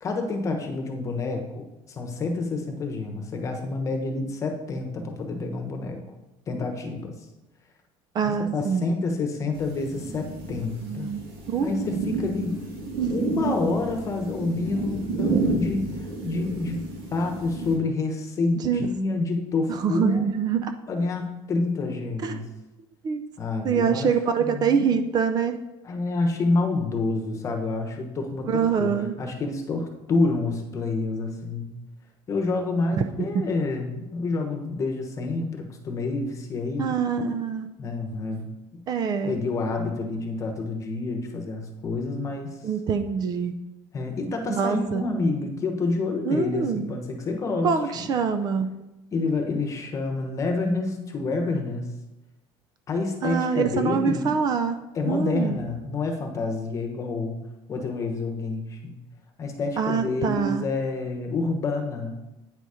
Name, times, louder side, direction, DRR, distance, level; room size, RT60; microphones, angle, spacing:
voice 1, 0.0-6.0 6.5-7.1 8.2-11.1 11.6-12.6 13.1-16.8 17.1-20.2 20.9-22.4 23.4-24.1 24.4-24.9 25.8-28.9 29.2-31.7 32.3-36.9 37.8-38.5 38.7-38.8 39.2-42.6 43.9-48.1 49.1-51.9 52.9-54.3 54.9-57.4 57.7-59.0 59.4-62.2, left 3 dB, 30° left, 4 dB, 1.1 m, -28 dB
voice 2, 8.1-8.9 10.8-11.2 11.5-11.7 13.0-13.6 18.6-18.9 19.7-20.7 22.2-22.4 23.0-23.2 23.6-25.6 28.4-29.1 36.8-37.7 38.9-39.4 42.6-43.5 44.5-45.0 46.3-46.9 47.6-48.7 53.2-54.8 55.0-55.6 59.8-60.6, right 6 dB, 40° right, 8 dB, 0.5 m, -25 dB
sound 1, 9.5-17.8, right 3 dB, 60° right, 2.0 m, -31 dB
9.0 x 4.1 x 4.9 m, 0.99 s
cardioid pair, 145°, 11 cm